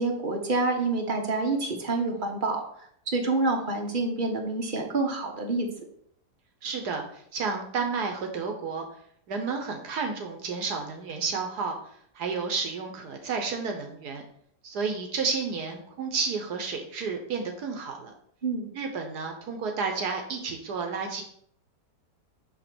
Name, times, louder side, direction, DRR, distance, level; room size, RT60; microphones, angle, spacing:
voice 1, 0.0-2.6 3.1-5.7 18.4-18.7, right 3 dB, 35° right, 2 dB, 1.1 m, -27 dB
voice 2, 6.6-8.9 9.3-11.8 12.1-14.2 14.6-18.1 18.7-21.2, right 5 dB, 70° right, 3 dB, 1.4 m, -31 dB
8.8 x 3.0 x 6.0 m, 0.66 s
omnidirectional pair, 1.8 m